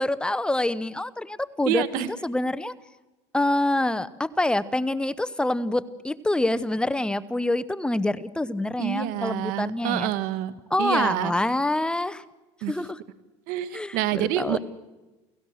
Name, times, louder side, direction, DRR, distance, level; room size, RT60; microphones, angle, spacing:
voice 1, 0.0-2.7 3.3-10.1 10.7-12.2 12.7-13.0 13.7-14.6, left 1 dB, 5° left, 14 dB, 0.7 m, -26 dB
voice 2, 1.6-2.1 8.8-10.5 10.8-11.3 12.6-12.7 13.5-14.6, right 12 dB, 70° right, 14 dB, 1.4 m, -27 dB
29.5 x 16.5 x 6.4 m, 1.1 s
supercardioid pair, 110°, 15 cm